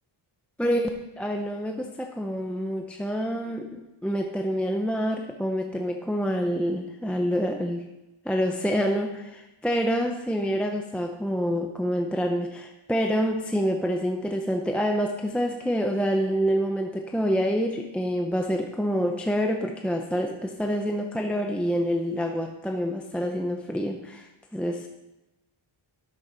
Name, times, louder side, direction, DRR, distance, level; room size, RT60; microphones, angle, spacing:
voice 1, 1.2-7.9 8.2-24.9, equal, ahead, 3 dB, 0.6 m, -27 dB
12.5 x 6.3 x 4.3 m, 0.97 s
wide cardioid pair, 125°, 49 cm